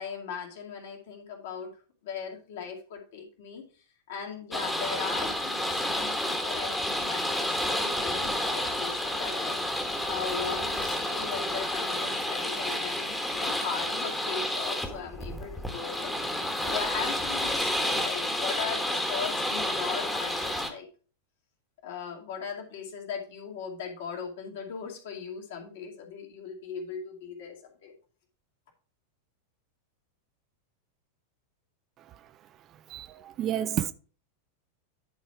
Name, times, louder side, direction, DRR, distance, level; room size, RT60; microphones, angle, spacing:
voice 1, 0.0-3.6 4.1-16.1 16.6-20.9 21.8-27.5 27.8-27.9, left 6 dB, 55° left, 2.4 m, -38 dB
sound 1, 4.5-20.7, left 1 dB, 5° left, 1.4 m, -30 dB
voice 2, 32.9-33.9, right 11 dB, 30° right, 0.5 m, -30 dB
10.5 x 4.3 x 4.7 m
figure-of-eight pair, 90°, 0 cm